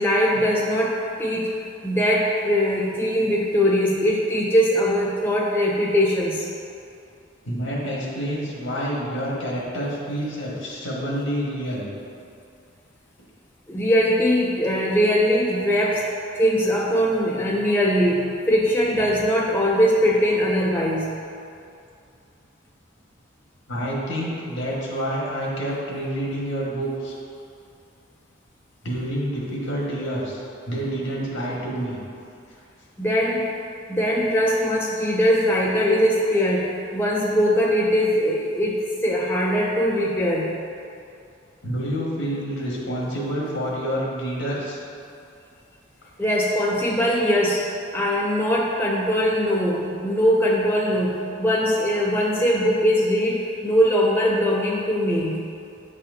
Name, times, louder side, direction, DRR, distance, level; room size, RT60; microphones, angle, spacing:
voice 1, 0.0-1.5 1.8-6.5 13.7-16.0 16.3-21.1 33.0-33.5 33.9-40.5 46.2-55.4, equal, 10° left, -4 dB, 0.3 m, -21 dB
voice 2, 7.4-11.9 23.7-27.2 28.8-32.0 41.6-44.8, equal, 65° left, -5 dB, 1.4 m, -28 dB
8.8 x 4.2 x 2.6 m, 2.5 s
head